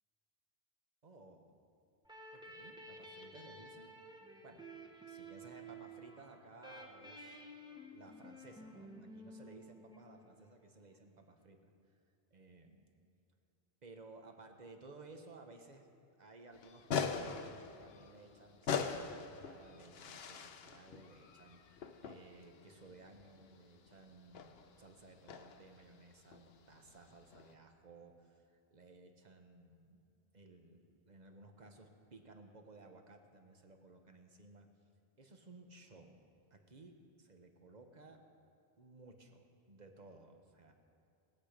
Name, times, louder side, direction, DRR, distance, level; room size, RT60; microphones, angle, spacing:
voice 1, 1.0-1.5 2.3-3.9 4.4-4.6 5.1-7.4 7.9-11.7 12.3-12.9 13.8-15.9 16.2-30.0 30.3-34.7 35.2-36.2 36.5-36.9 37.2-38.2 38.8-40.7, right 3 dB, 45° right, 5 dB, 1.2 m, -58 dB
sound 1, 2.0-10.5, right 1 dB, 5° right, 1.1 m, -53 dB
sound 2, 16.5-27.5, left 6 dB, 75° left, 1.0 m, -43 dB
20.5 x 8.2 x 5.1 m, 2.6 s
omnidirectional pair, 1.0 m